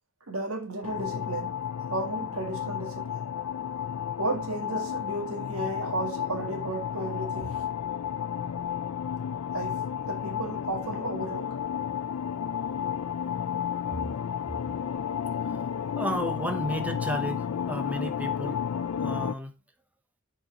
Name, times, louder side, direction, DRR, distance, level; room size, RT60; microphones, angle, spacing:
voice 1, 0.3-1.6 1.9-3.1 4.2-7.6 9.5-11.6, right 2 dB, 90° right, 1.8 m, -33 dB
sound 1, 0.8-19.3, left 8 dB, 80° left, 0.4 m, -32 dB
voice 2, 16.0-18.6 19.0-19.6, equal, 5° right, 0.7 m, -32 dB
7.1 x 4.4 x 3.8 m
head